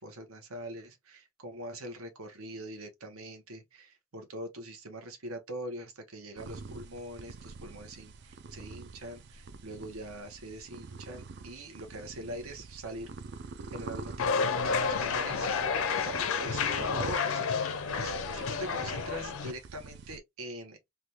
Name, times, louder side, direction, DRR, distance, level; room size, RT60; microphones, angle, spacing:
voice 1, 0.0-13.1 13.7-20.8, right 1 dB, 75° right, 0.9 m, -43 dB
sound 1, 6.4-20.2, right 4 dB, 50° right, 0.4 m, -46 dB
sound 2, 14.2-19.5, left 5 dB, 70° left, 0.5 m, -30 dB
3.3 x 2.2 x 2.8 m
head